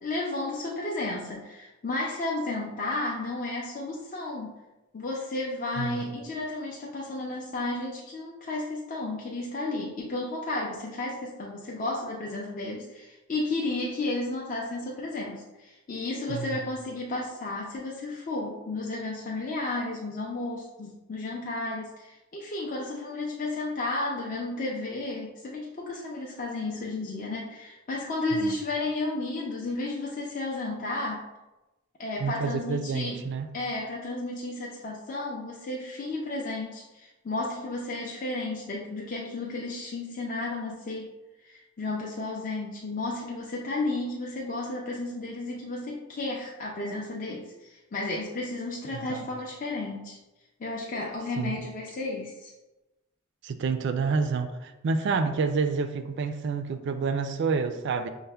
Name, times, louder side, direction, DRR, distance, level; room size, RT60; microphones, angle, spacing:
voice 1, 0.0-4.5 4.9-31.3 32.0-33.2 33.5-41.1 41.4-50.2 50.6-52.5, left 2 dB, 40° left, 0.5 m, -33 dB
voice 2, 16.3-16.6 28.4-28.5 32.2-33.5 49.1-49.3 51.4-51.6 53.4-58.1, right 5 dB, 55° right, 0.3 m, -28 dB
5.5 x 2.1 x 3.3 m
head